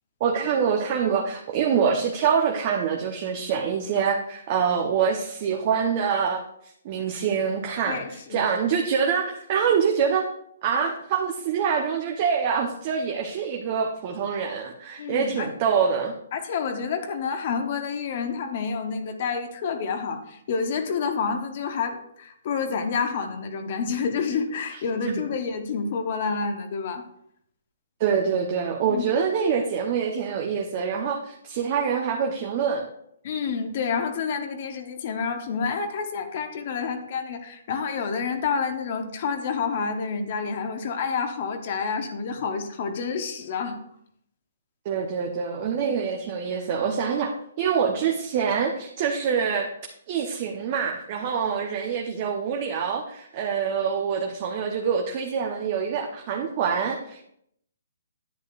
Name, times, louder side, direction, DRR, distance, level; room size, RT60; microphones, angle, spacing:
voice 1, 0.2-6.4 6.8-10.3 10.6-16.1 25.0-25.2 28.0-32.9 44.8-47.3 47.6-49.7 50.1-57.2, right 6 dB, 40° right, 1 dB, 0.9 m, -25 dB
voice 2, 7.9-8.5 15.0-15.5 16.3-27.0 28.9-29.0 33.2-43.8, left 5 dB, 50° left, 6 dB, 1.1 m, -29 dB
10.5 x 8.4 x 2.5 m, 0.72 s
figure-of-eight pair, 135°, 0 cm